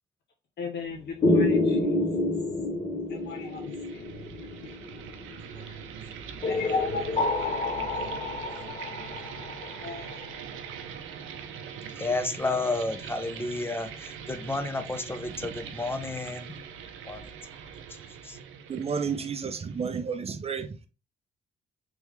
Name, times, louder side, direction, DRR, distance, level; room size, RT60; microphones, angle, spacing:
voice 1, 0.6-2.3 3.1-4.1 5.5-5.8 6.5-8.1 8.4-8.5 9.6-10.2, left 4 dB, 60° left, 0.7 m, -37 dB
sound 1, 1.2-5.5 6.4-10.2, left 2 dB, 35° left, 1.0 m, -28 dB
sound 2, 3.3-20.0, right 7 dB, 85° right, 0.6 m, -42 dB
voice 2, 11.9-16.6 17.1-17.3 17.9-18.0 18.2-18.4, left 2 dB, 10° left, 0.6 m, -31 dB
voice 3, 18.7-20.9, right 6 dB, 30° right, 0.6 m, -31 dB
3.5 x 3.1 x 3.2 m
cardioid pair, 90°, 20 cm